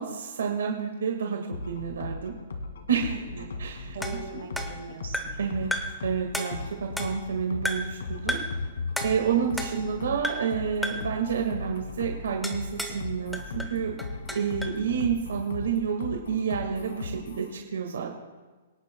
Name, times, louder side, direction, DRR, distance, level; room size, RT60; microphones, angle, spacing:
voice 1, 0.0-1.4 1.7-2.3 2.9-3.1 3.6-4.0 5.4-5.7 6.0-8.4 9.0-13.9 14.3-18.1, right 7 dB, 90° right, 2 dB, 1.7 m, -29 dB
sound 1, 1.5-17.5, left 3 dB, 85° left, 2.1 m, -37 dB
voice 2, 3.1-3.6 3.8-5.7 9.6-10.1, right 5 dB, 70° right, 3 dB, 2.2 m, -42 dB
sound 2, 4.0-5.5 5.7-6.0 6.3-7.3 7.6-8.0 8.3-8.6 9.0-10.0 10.2-10.6 10.8-11.1 12.4-13.0 13.3-14.8, equal, ahead, 0.8 m, -34 dB
24.5 x 10.5 x 2.3 m, 1.3 s
hypercardioid pair, 165°, 0 cm